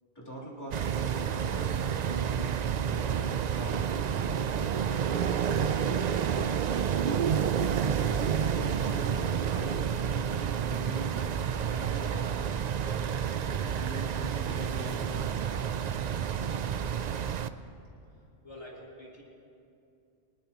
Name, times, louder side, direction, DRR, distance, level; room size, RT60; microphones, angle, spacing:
voice 1, 0.1-5.3 8.5-9.8 10.6-11.1 11.6-12.3 12.9-15.5, right 1 dB, 20° left, -7 dB, 3.3 m, -43 dB
sound 1, 0.7-17.5, right 8 dB, 60° right, 0.4 m, -29 dB
voice 2, 18.4-19.2, left 1 dB, 65° left, -4 dB, 2.7 m, -47 dB
23.5 x 20.0 x 3.0 m, 2.6 s
omnidirectional pair, 1.2 m